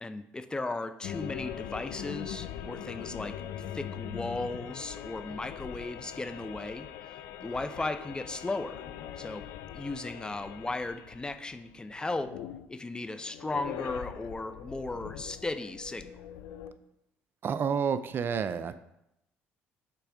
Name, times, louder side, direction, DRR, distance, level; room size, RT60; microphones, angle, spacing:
voice 1, 0.0-3.3 3.7-8.8 9.2-9.4 9.7-12.3 12.7-16.1, left 2 dB, 15° left, 10 dB, 0.4 m, -36 dB
sound 1, 1.0-12.7 13.0-16.7, left 10 dB, 80° left, 0.4 m, -42 dB
voice 2, 17.4-18.8, right 7 dB, 45° right, 13 dB, 0.3 m, -29 dB
6.8 x 3.6 x 4.7 m, 0.82 s
supercardioid pair, 85°, 5 cm